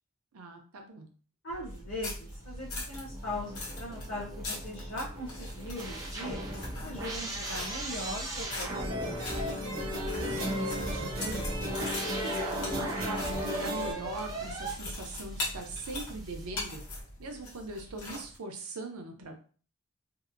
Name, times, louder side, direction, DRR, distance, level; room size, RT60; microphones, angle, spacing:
voice 1, 0.3-1.1 9.8-11.5 11.9-16.8 17.2-19.4, right 2 dB, 85° right, 4 dB, 0.6 m, -41 dB
voice 2, 1.4-6.4 6.8-9.2, left 1 dB, 55° left, -6 dB, 0.6 m, -40 dB
sound 1, 1.5-17.0, right 1 dB, 15° right, 0.4 m, -39 dB
sound 2, 1.7-18.4, left 2 dB, 80° left, 0.9 m, -43 dB
sound 3, 8.7-13.9, left 1 dB, 65° right, 1.0 m, -35 dB
2.7 x 2.1 x 2.5 m, 0.40 s
head